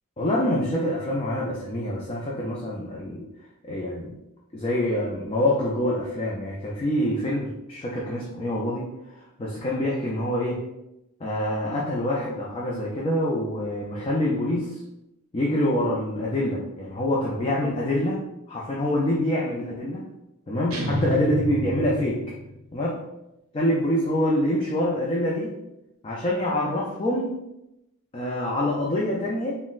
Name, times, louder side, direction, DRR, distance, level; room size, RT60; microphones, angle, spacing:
voice 1, 0.2-3.3 3.6-4.2 4.5-10.6 11.2-14.8 15.3-20.0 20.5-22.2 22.7-23.0 23.5-25.6 26.0-27.4 28.1-29.6, left 1 dB, 25° left, -4 dB, 0.3 m, -26 dB
sound 1, 20.7-22.8, equal, 75° right, 0.6 m, -29 dB
3.8 x 2.1 x 2.4 m, 0.89 s
head